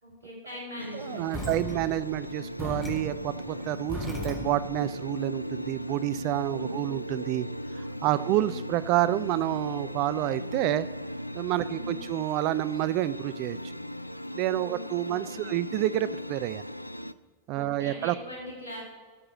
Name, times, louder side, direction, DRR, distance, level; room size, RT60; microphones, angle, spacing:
voice 1, 0.0-1.8 6.6-7.0 8.1-8.6 11.6-12.1 14.6-15.6 17.6-18.8, equal, 80° right, -4 dB, 4.1 m, -42 dB
sound 1, 0.8-17.1, equal, 85° left, 0.4 m, -37 dB
voice 2, 0.9-7.5 7.8-10.9 11.3-13.7 14.3-16.7 17.5-18.1, right 14 dB, 40° right, 17 dB, 0.4 m, -29 dB
sound 2, 1.3-4.8, left 2 dB, ahead, 2.1 m, -38 dB
13.0 x 6.7 x 7.2 m, 1.5 s
figure-of-eight pair, 90°, 0 cm